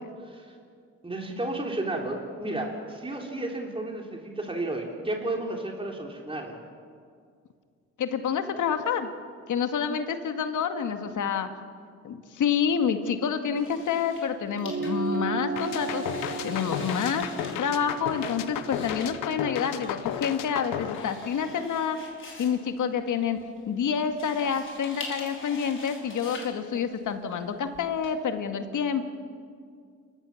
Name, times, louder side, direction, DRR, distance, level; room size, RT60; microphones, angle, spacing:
voice 1, 0.2-0.6 1.0-6.6, right 2 dB, 15° right, 1 dB, 3.5 m, -32 dB
voice 2, 8.0-9.1 9.5-11.5 12.0-16.1 16.4-17.3 17.6-22.0 22.4-23.4 23.7-29.0, left 7 dB, 65° left, 7 dB, 2.0 m, -28 dB
sound 1, 13.6-28.1, left 3 dB, 40° left, 5.5 m, -44 dB
sound 2, 14.6-19.4, right 5 dB, 40° right, 0.9 m, -35 dB
sound 3, 15.6-21.8, left 11 dB, 85° left, 1.1 m, -34 dB
30.0 x 15.0 x 7.3 m, 2.2 s
supercardioid pair, 65°, 32 cm